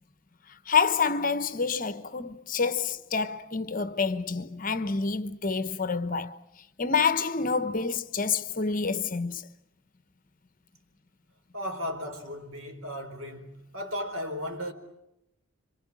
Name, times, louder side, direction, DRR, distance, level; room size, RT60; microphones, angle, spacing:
voice 1, 0.5-6.4 6.8-9.5, left 5 dB, 40° left, 1.0 m, -28 dB
voice 2, 11.5-14.7, left 1 dB, 70° right, 4.5 m, -35 dB
27.5 x 26.0 x 7.5 m
head